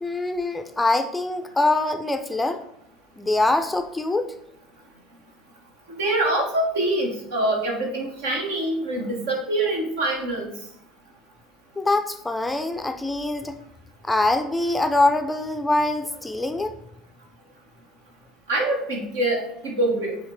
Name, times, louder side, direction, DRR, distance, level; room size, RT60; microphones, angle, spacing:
voice 1, 0.0-2.6 3.2-4.3 11.8-13.6 14.0-16.8, left 2 dB, 10° left, 7 dB, 0.5 m, -23 dB
voice 2, 6.0-10.5 18.5-20.2, right 1 dB, 65° right, 1 dB, 1.4 m, -25 dB
7.8 x 3.2 x 3.8 m, 0.77 s
figure-of-eight pair, 65°, 0 cm